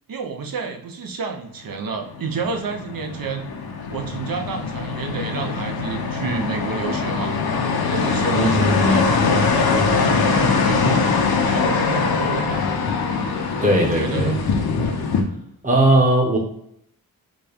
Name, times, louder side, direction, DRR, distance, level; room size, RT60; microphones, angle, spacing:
voice 1, 0.1-3.5 3.9-7.3 7.9-11.1 11.4-12.6 13.6-14.4, right 5 dB, 65° right, 4 dB, 0.6 m, -30 dB
sound 1, 1.8-15.2, left 4 dB, 85° left, 0.6 m, -22 dB
voice 2, 8.3-9.1 13.6-14.3 15.6-16.4, right 1 dB, 20° right, 0 dB, 0.9 m, -18 dB
4.0 x 2.3 x 3.4 m, 0.72 s
wide cardioid pair, 80°, 36 cm